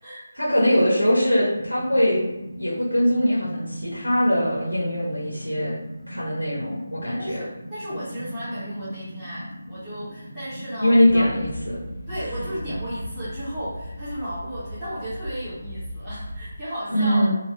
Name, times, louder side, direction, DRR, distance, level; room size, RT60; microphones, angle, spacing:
voice 1, 0.3-2.2 2.6-5.7 6.1-7.4 10.8-11.8 16.9-17.4, equal, 90° right, -6 dB, 0.9 m, -21 dB
sound 1, 1.5-14.2, equal, 20° left, 1.1 m, -40 dB
voice 2, 7.0-11.3 12.1-17.3, equal, ahead, -19 dB, 0.8 m, -34 dB
sound 2, 11.0-16.5, equal, 60° right, 0.7 m, -37 dB
2.6 x 2.1 x 3.0 m, 0.97 s
figure-of-eight pair, 155°, 0 cm